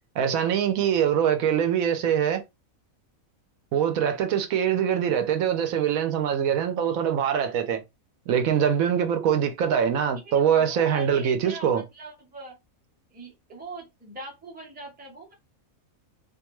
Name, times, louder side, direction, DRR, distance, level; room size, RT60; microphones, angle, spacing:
voice 1, 0.2-2.4 3.7-7.8 8.3-11.8, right 8 dB, 80° right, 1.0 m, -23 dB
voice 2, 10.2-12.6 13.1-15.3, right 2 dB, 10° right, 0.6 m, -42 dB
2.6 x 2.3 x 2.9 m
omnidirectional pair, 1.4 m